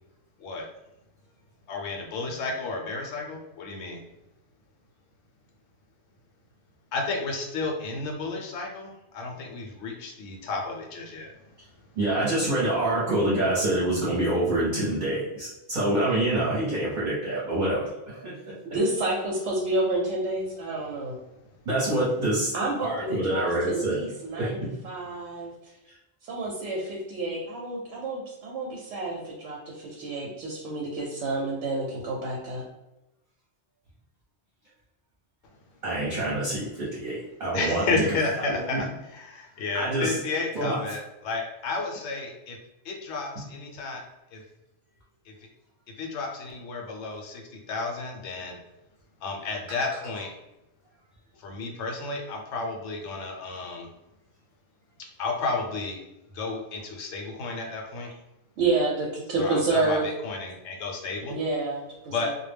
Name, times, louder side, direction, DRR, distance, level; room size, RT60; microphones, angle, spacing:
voice 1, 1.7-4.0 6.9-11.3 37.5-42.6 42.8-44.0 44.3-44.4 45.3-45.4 46.0-48.6 49.2-50.3 51.4-53.9 55.2-56.0 56.3-58.1 59.4-61.4 62.1-62.3, left 3 dB, 75° left, 1 dB, 0.8 m, -32 dB
voice 2, 12.0-18.4 21.7-22.5 22.8-24.0 24.4-24.5 35.8-37.8 38.5-38.9 39.7-40.1 40.5-40.8, right 1 dB, 45° right, -7 dB, 0.8 m, -26 dB
voice 3, 18.7-21.2 22.5-25.8 26.2-32.6 58.6-60.1 61.3-62.3, right 2 dB, 90° right, -3 dB, 0.9 m, -29 dB
2.2 x 2.0 x 3.2 m, 0.95 s
omnidirectional pair, 1.2 m